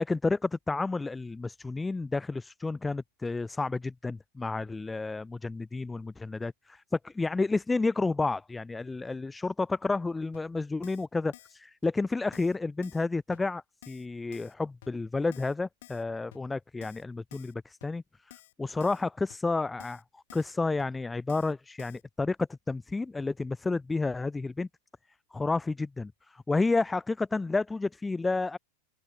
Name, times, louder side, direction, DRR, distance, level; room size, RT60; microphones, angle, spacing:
voice 1, 0.0-24.7 25.3-28.6, left 3 dB, 10° left, 0.9 m, -31 dB
Keyboard (musical), 10.3-10.4 10.8-11.1 11.3-11.6 11.8-11.9 12.3-12.6 12.8-13.1 13.3-13.4 13.8-14.1 14.3-14.5 14.8-14.9 15.3-15.5 15.8-16.0 16.3-16.4 16.8-17.0 17.3-17.5 17.8-17.9 18.3-18.5 18.8-19.0 19.3-19.4 19.8-20.0 20.3-20.5 20.8-20.9 21.3-21.5 21.8-22.0, left 16 dB, 70° left, 6.6 m, -52 dB
open air
hypercardioid pair, 125°, 0 cm